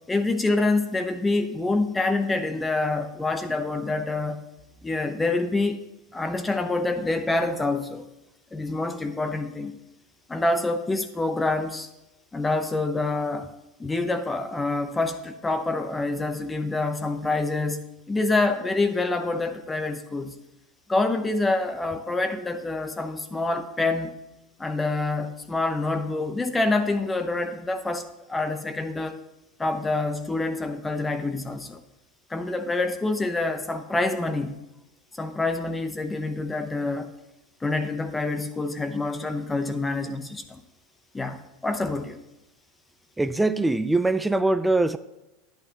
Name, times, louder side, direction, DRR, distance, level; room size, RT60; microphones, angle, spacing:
voice 1, 0.1-4.4 4.8-5.8 6.1-8.1 8.5-9.8 10.3-11.9 12.3-13.5 13.8-20.4 20.9-24.2 24.6-29.2 29.6-31.8 32.3-34.6 35.1-37.1 37.6-40.6 41.1-42.2, left 2 dB, 15° left, 0.8 m, -26 dB
voice 2, 43.2-45.0, right 2 dB, 5° right, 0.5 m, -22 dB
10.5 x 9.4 x 2.9 m
hypercardioid pair, 105°, 0 cm